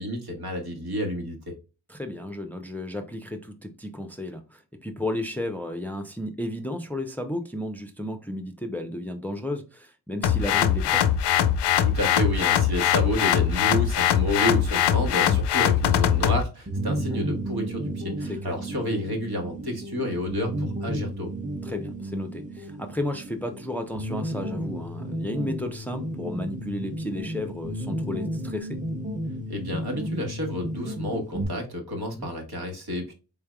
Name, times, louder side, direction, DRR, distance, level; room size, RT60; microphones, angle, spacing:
voice 1, 0.0-1.5 11.8-21.3 29.5-33.1, left 1 dB, 60° right, 1.5 m, -30 dB
voice 2, 1.9-11.1 15.3-15.4 18.2-18.6 21.6-28.8 32.2-32.3, left 1 dB, 5° left, 0.6 m, -33 dB
sound 1, 10.2-16.4, left 9 dB, 70° left, 0.5 m, -22 dB
sound 2, 16.7-31.4, right 1 dB, 15° right, 1.0 m, -33 dB
3.8 x 3.3 x 2.3 m
cardioid pair, 40°, 42 cm